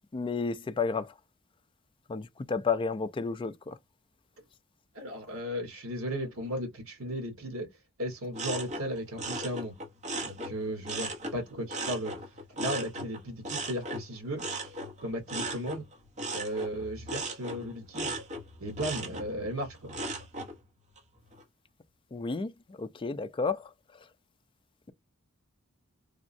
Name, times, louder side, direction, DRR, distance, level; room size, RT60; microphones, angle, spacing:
voice 1, 0.1-1.1 2.1-3.8 22.1-24.1, left 4 dB, 25° left, 0.3 m, -32 dB
voice 2, 4.9-7.7 8.0-9.7 10.2-12.1 12.6-14.4 15.0-15.8 16.3-18.1 18.6-20.0, equal, 70° right, 1.3 m, -35 dB
sound 1, 8.3-11.4 11.7-20.5 21.0-21.4, right 2 dB, 35° right, 0.8 m, -37 dB
3.5 x 2.1 x 2.5 m
head